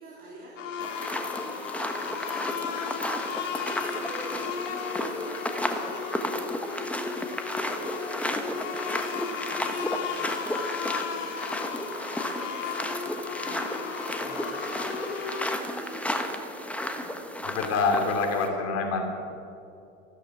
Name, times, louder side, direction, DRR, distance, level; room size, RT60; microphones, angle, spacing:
voice 1, 0.0-17.6, right 1 dB, 20° right, -4 dB, 3.5 m, -45 dB
sound 1, 0.6-15.6, left 7 dB, 75° left, 2.1 m, -35 dB
sound 2, 0.8-18.5, left 1 dB, 5° left, 1.3 m, -33 dB
voice 2, 17.4-19.0, left 4 dB, 40° left, 3 dB, 2.8 m, -26 dB
15.0 x 13.0 x 6.2 m, 2.6 s
hypercardioid pair, 95°, 39 cm